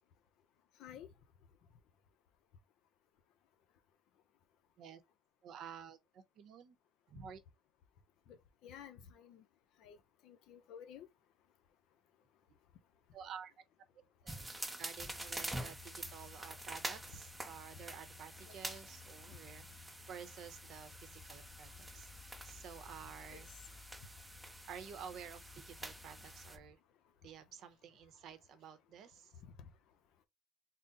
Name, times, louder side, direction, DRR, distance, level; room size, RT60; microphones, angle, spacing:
voice 1, 5.4-6.8 7.1-7.4 13.1-13.6 14.2-14.5 14.8-23.5 24.7-26.8 27.2-29.3, right 8 dB, 55° right, 0.8 m, -51 dB
voice 2, 8.6-9.4 9.8-10.0 10.2-11.1 18.4-18.6 23.3-23.6 29.4-29.7, left 8 dB, 70° left, 0.6 m, -53 dB
sound 1, 14.3-26.6, right 1 dB, 5° right, 0.5 m, -47 dB
sound 2, 15.0-26.7, left 7 dB, 30° left, 0.9 m, -58 dB
3.8 x 2.1 x 3.8 m
cardioid pair, 135°, 0 cm